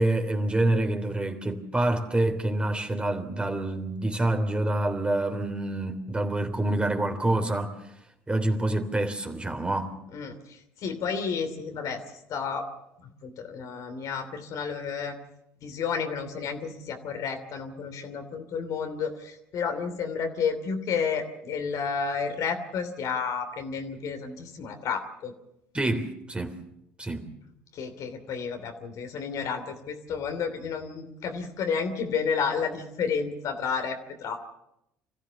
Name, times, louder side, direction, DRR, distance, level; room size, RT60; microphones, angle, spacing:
voice 1, 0.0-7.7 8.3-9.9 25.7-26.6 27.0-27.2, right 1 dB, 15° right, 3.3 m, -27 dB
voice 2, 10.8-12.0 12.3-12.6 13.0-15.2 15.6-25.3 27.7-34.4, left 6 dB, 60° left, 3.0 m, -31 dB
25.5 x 15.0 x 7.0 m
hypercardioid pair, 65°, 7 cm